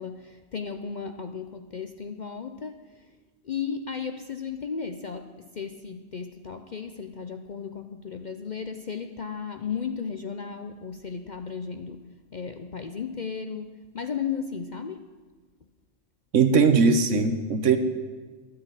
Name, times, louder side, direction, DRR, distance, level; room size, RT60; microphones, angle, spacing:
voice 1, 0.0-3.1 3.4-15.0, left 6 dB, 50° left, 7 dB, 0.6 m, -35 dB
voice 2, 16.3-17.8, right 5 dB, 70° right, 9 dB, 1.3 m, -20 dB
11.5 x 9.7 x 9.0 m, 1.4 s
omnidirectional pair, 1.4 m